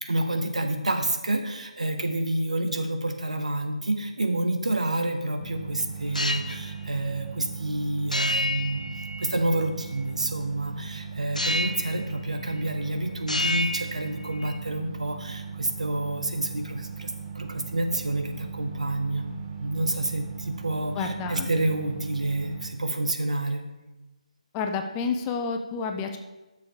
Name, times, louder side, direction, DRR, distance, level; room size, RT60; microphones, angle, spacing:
voice 1, 0.0-8.8 9.2-19.3 19.6-23.6, right 2 dB, 65° right, 6 dB, 1.1 m, -28 dB
sound 1, 5.4-22.7, right 6 dB, 15° right, 1.0 m, -39 dB
sound 2, 6.0-6.6 8.1-9.6 11.4-12.0 12.4-12.9 13.2-14.6, left 1 dB, 80° left, 0.7 m, -29 dB
voice 2, 20.9-21.5 24.5-26.2, left 5 dB, 15° left, 5 dB, 0.4 m, -29 dB
13.0 x 6.8 x 3.5 m, 1.1 s
figure-of-eight pair, 150°, 4 cm